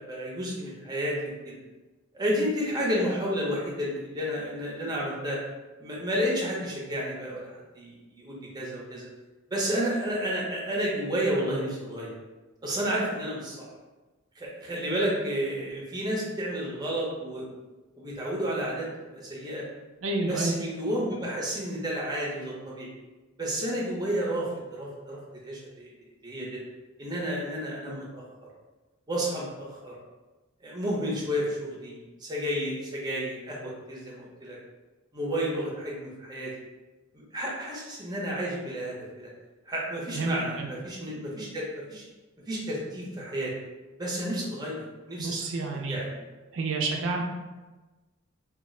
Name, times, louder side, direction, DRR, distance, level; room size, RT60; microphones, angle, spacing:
voice 1, 0.0-1.5 2.1-5.4 5.8-9.1 9.5-12.2 12.6-13.7 14.4-17.6 18.0-19.6 20.3-22.9 23.4-25.9 26.2-26.6 27.0-28.2 29.1-30.0 30.6-34.6 35.1-36.5 37.3-39.3 39.7-42.0 42.5-43.5 44.0-45.4 45.7-46.1, equal, 20° right, -4 dB, 0.7 m, -31 dB
voice 2, 20.0-20.6 40.1-40.7 45.2-46.0 46.5-47.2, right 3 dB, 65° right, 2 dB, 0.4 m, -29 dB
2.3 x 2.1 x 3.7 m, 1.2 s
head